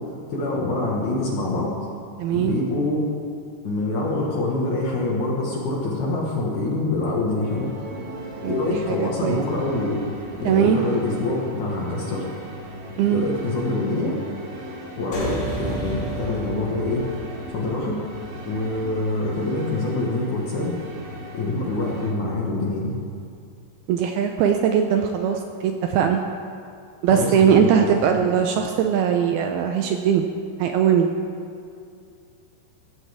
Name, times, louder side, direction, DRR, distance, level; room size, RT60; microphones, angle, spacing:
voice 1, 0.1-1.7 2.3-3.0 3.6-7.7 8.5-10.0 10.4-12.3 13.1-14.2 15.0-17.1 17.5-18.0 18.5-20.8 21.3-23.0 27.1-27.8 28.2-28.3, left 2 dB, 60° left, -3 dB, 2.3 m, -25 dB
voice 2, 2.2-2.5 8.4-9.4 10.4-10.9 13.0-13.3 23.9-26.2 27.0-30.3 30.6-31.1, right 8 dB, 85° right, 4 dB, 2.2 m, -20 dB
sound 1, 7.4-22.1, equal, 45° right, 3.2 m, -37 dB
sound 2, 15.1-19.9, right 2 dB, 85° left, 6.2 m, -34 dB
16.0 x 15.5 x 3.5 m, 2.4 s
omnidirectional pair, 5.1 m